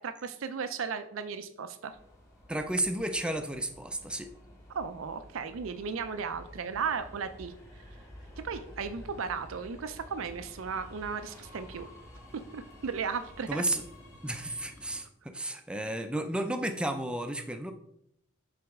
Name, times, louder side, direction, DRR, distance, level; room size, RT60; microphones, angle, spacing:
voice 1, 0.0-1.9 4.7-7.5 8.4-11.9 12.3-13.6 14.5-14.6, right 5 dB, 85° right, 10 dB, 0.5 m, -35 dB
Subway metro underground, 1.9-15.0, equal, 15° left, 1.5 m, -51 dB
voice 2, 2.5-4.3 13.5-13.8 14.2-17.7, right 1 dB, 5° right, 7 dB, 0.4 m, -32 dB
7.8 x 4.1 x 3.5 m, 0.74 s
head